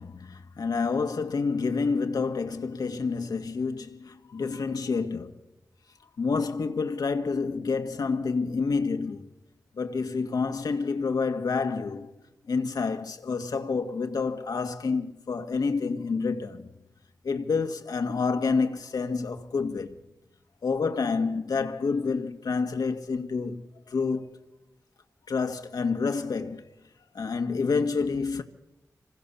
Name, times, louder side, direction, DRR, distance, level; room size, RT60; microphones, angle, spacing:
voice 1, 0.0-5.3 6.2-9.3 9.8-12.1 12.5-16.7 17.2-20.0 20.6-24.4 25.3-26.7 27.1-28.4, left 4 dB, 85° left, 1.9 m, -28 dB
26.5 x 25.0 x 7.1 m
wide cardioid pair, 95°, 7 cm